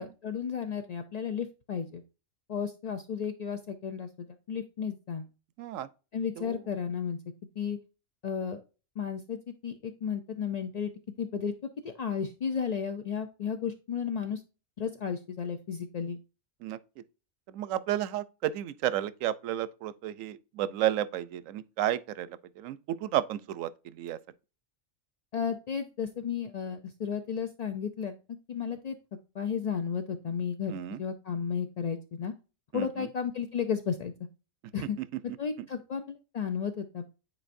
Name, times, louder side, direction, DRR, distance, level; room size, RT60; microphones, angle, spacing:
voice 1, 0.0-2.0 2.5-5.3 6.1-7.2 7.6-7.8 8.2-8.6 9.0-10.9 11.2-11.5 11.8-14.4 14.8-16.2 25.3-28.2 28.5-29.0 29.3-32.3 32.7-34.1 34.7-35.0 35.4-37.1, left 7 dB, 55° left, 0.4 m, -33 dB
voice 2, 5.6-5.9 6.4-6.6 16.6-16.8 17.5-24.2 30.7-31.0 32.7-33.1 35.0-35.2, right 12 dB, 80° right, 1.0 m, -32 dB
9.8 x 4.5 x 2.5 m
omnidirectional pair, 1.4 m